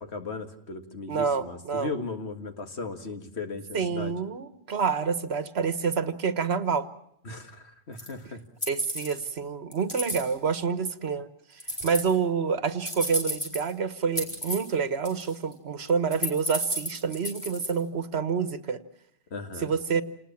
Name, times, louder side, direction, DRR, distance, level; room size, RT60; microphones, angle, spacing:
voice 1, 0.1-4.1 7.2-8.4 19.3-19.7, left 3 dB, 85° left, 6 dB, 2.2 m, -37 dB
voice 2, 1.1-1.9 3.7-6.9 8.7-18.8 19.6-20.0, right 6 dB, 75° right, 12 dB, 1.5 m, -28 dB
sound 1, 8.0-8.1 8.6-9.2 9.7-10.2 11.6-12.1 12.9-13.7 14.2-14.7 15.1-15.5 15.9-17.7, equal, 25° left, 5.5 m, -31 dB
28.5 x 19.5 x 7.2 m, 0.72 s
omnidirectional pair, 1.1 m